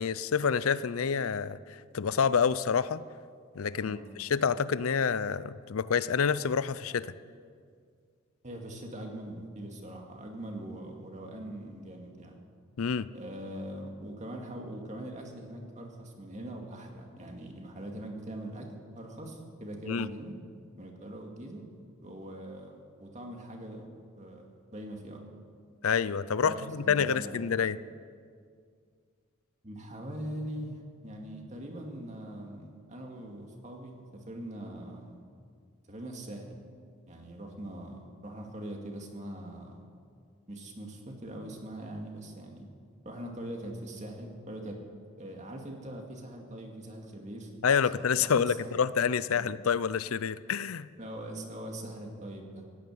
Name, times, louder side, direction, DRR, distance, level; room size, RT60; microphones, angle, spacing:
voice 1, 0.0-1.6 1.9-3.0 3.5-7.1 12.8-13.1 19.9-20.1 25.8-27.8 47.6-50.9, left 6 dB, 80° left, 17 dB, 0.5 m, -28 dB
voice 2, 8.4-12.4 13.1-18.7 18.9-20.3 20.7-21.6 22.0-23.9 24.2-25.2 26.4-27.5 29.6-35.2 35.9-36.6 37.1-39.8 40.5-42.7 43.0-44.8 45.2-47.5 48.2-48.7 49.3-49.5 51.0-52.7, right 1 dB, 35° right, 1 dB, 2.2 m, -42 dB
16.5 x 9.2 x 9.4 m, 2.1 s
head